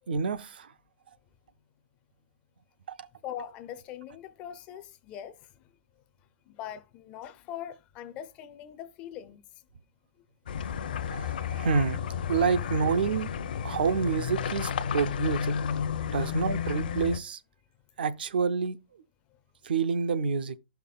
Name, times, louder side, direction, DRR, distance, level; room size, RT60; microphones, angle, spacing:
voice 1, 0.1-0.7 3.0-3.1 11.0-12.0 12.3-13.3 13.6-15.6 16.1-17.4 18.0-18.8 19.6-20.6, right 5 dB, 75° right, 0.6 m, -28 dB
voice 2, 3.2-5.5 6.5-9.4 14.8-14.9 16.0-16.4, left 10 dB, 20° left, 0.4 m, -42 dB
sound 1, 10.5-17.2, left 7 dB, 65° left, 0.7 m, -32 dB
12.0 x 5.7 x 2.3 m
hypercardioid pair, 160°, 5 cm